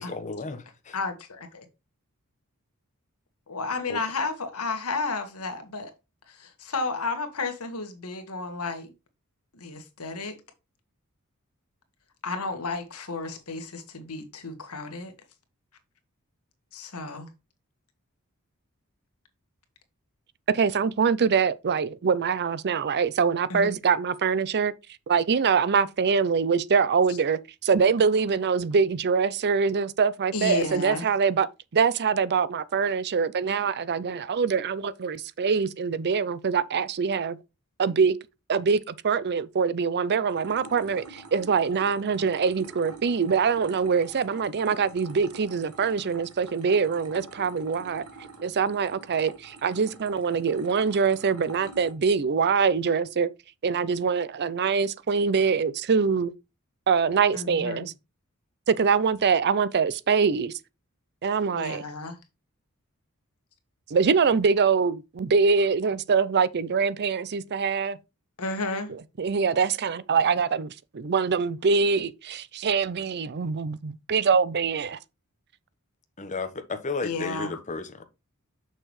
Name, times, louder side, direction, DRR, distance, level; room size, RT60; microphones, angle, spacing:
voice 1, 0.0-0.9 3.9-4.0 76.2-78.0, left 3 dB, 35° left, 1.1 m, -33 dB
voice 2, 0.9-1.5 3.5-5.9 6.3-8.9 9.5-10.4 12.2-15.1 16.7-17.3 23.5-23.8 30.3-31.1 57.3-57.9 61.6-62.2 68.4-68.9 77.0-77.5, left 3 dB, 85° left, 1.7 m, -32 dB
voice 3, 20.5-24.7 25.1-31.5 31.7-37.4 37.8-38.2 38.5-48.0 48.4-53.3 53.6-56.3 56.9-57.9 58.7-60.5 61.2-61.8 63.9-68.0 69.2-75.0, right 5 dB, 50° right, 0.5 m, -24 dB
sound 1, 40.3-51.9, right 3 dB, 80° right, 1.7 m, -46 dB
6.7 x 6.2 x 3.1 m
head